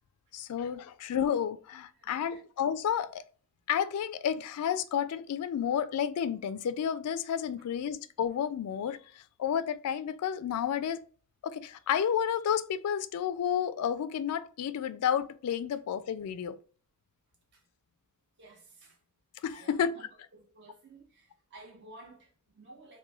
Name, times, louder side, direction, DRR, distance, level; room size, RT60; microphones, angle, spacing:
voice 1, 0.3-3.2 3.7-11.0 11.4-16.6 19.4-20.0, left 8 dB, 85° left, 0.3 m, -31 dB
voice 2, 1.9-2.4 17.5-17.7 18.4-19.0 19.5-23.0, right 2 dB, 50° right, 0.9 m, -53 dB
3.0 x 2.2 x 2.3 m
head